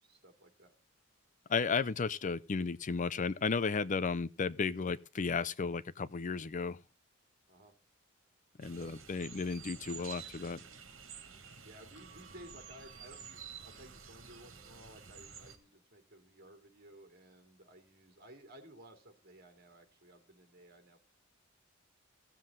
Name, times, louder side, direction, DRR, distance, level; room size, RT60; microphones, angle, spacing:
voice 1, 0.0-0.7 7.5-7.7 11.6-21.0, right 1 dB, 50° right, 3.0 m, -56 dB
voice 2, 1.5-6.8 8.6-10.6, left 5 dB, 40° left, 0.5 m, -34 dB
sound 1, 8.6-15.6, right 6 dB, 70° right, 2.3 m, -50 dB
16.5 x 7.5 x 3.8 m
head